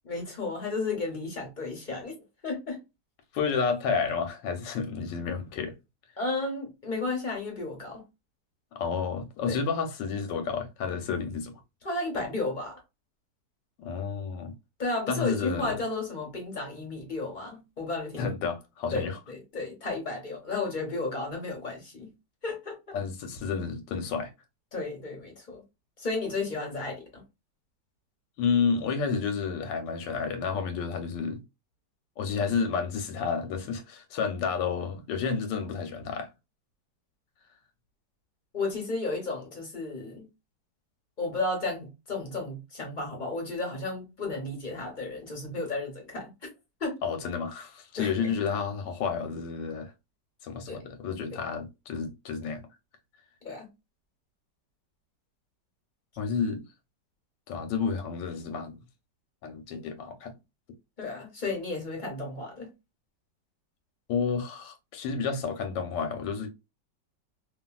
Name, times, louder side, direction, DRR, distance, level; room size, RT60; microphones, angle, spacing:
voice 1, 0.1-2.1 2.4-2.8 6.2-8.0 9.5-9.6 11.8-12.8 14.8-18.3 18.9-22.1 22.4-23.0 24.7-25.6 26.0-27.2 38.5-40.3 41.2-46.3 46.8-47.0 48.0-48.3 50.7-50.8 51.3-51.4 53.4-53.7 61.0-62.7, left 3 dB, 35° left, 1.0 m, -33 dB
voice 2, 3.3-5.7 8.7-11.5 13.8-14.6 15.1-15.8 18.2-19.2 22.9-24.3 28.4-31.4 32.2-36.3 47.0-49.9 50.4-52.6 56.2-56.6 57.5-58.8 59.4-60.3 64.1-66.5, left 5 dB, 85° left, 1.4 m, -30 dB
2.8 x 2.7 x 2.2 m
omnidirectional pair, 1.9 m